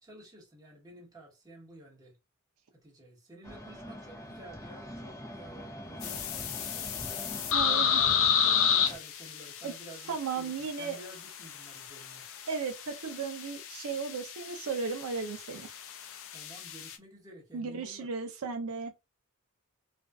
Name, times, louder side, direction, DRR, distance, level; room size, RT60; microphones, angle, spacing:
voice 1, 0.0-2.2 2.7-7.2 7.6-12.2 16.3-18.1, right 1 dB, 15° right, 1.1 m, -51 dB
sound 1, 3.4-9.0, equal, 15° left, 0.6 m, -43 dB
sound 2, 6.0-16.9, left 7 dB, 65° left, 0.4 m, -32 dB
voice 2, 7.5-8.0 9.6-9.7 10.1-11.0 12.5-15.7 17.5-18.9, right 5 dB, 80° right, 0.5 m, -35 dB
2.5 x 2.3 x 2.3 m
head